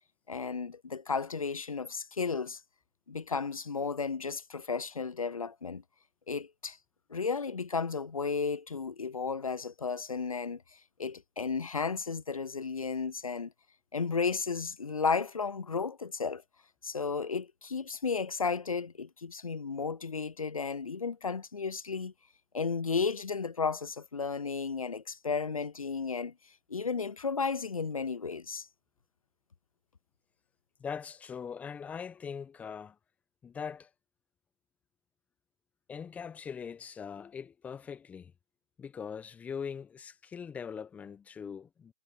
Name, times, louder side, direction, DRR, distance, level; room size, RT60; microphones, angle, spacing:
voice 1, 0.3-2.6 3.1-5.8 6.3-6.8 7.1-10.6 11.0-13.5 13.9-16.4 16.8-22.1 22.5-26.3 26.7-28.7, left 5 dB, 80° left, 0.7 m, -33 dB
voice 2, 30.8-33.0 33.4-33.9 35.9-38.3 38.8-41.9, left 7 dB, 10° left, 1.1 m, -41 dB
figure-of-eight pair, 140°, 18 cm